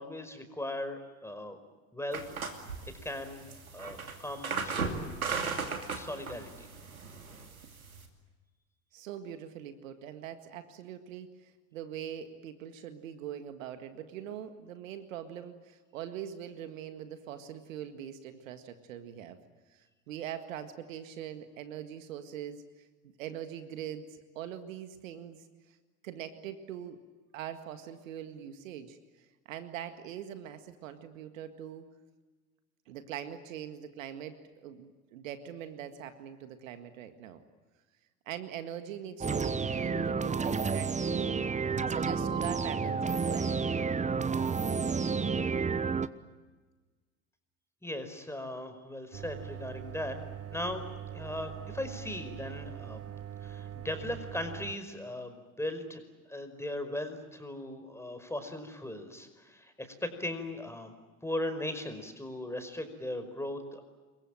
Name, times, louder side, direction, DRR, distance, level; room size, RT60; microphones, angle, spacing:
voice 1, 0.0-1.6 1.9-2.2 3.0-3.4 3.7-5.1 5.9-6.7 47.8-50.2 50.5-50.8 51.1-53.1 53.4-56.0 56.3-60.9 61.2-63.8, left 1 dB, 5° left, 8 dB, 5.2 m, -38 dB
sound 1, 2.1-8.1, right 4 dB, 85° right, 2.7 m, -37 dB
voice 2, 8.9-19.4 19.7-22.9 23.2-24.1 24.4-25.4 26.0-27.0 27.3-29.0 29.5-31.9 32.9-37.4 38.3-41.5 41.9-43.6, right 10 dB, 65° right, 9 dB, 2.0 m, -42 dB
sound 2, 39.2-46.1, right 5 dB, 15° right, 1.1 m, -30 dB
sound 3, 49.1-54.7, right 10 dB, 35° right, 1.5 m, -43 dB
27.5 x 23.0 x 9.1 m, 1.3 s
figure-of-eight pair, 65°, 42 cm